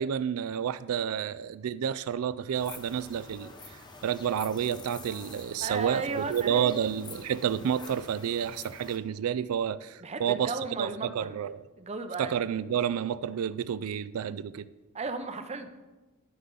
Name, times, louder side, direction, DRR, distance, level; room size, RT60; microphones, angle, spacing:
voice 1, 0.0-10.5 10.8-11.6 12.2-14.7, right 8 dB, 85° right, 16 dB, 0.3 m, -30 dB
sound 1, 2.5-9.0, left 3 dB, 20° left, 0.7 m, -48 dB
voice 2, 5.6-6.9 10.0-12.4 14.9-15.7, right 3 dB, 30° right, 8 dB, 0.6 m, -35 dB
12.5 x 5.6 x 3.8 m, 1.2 s
head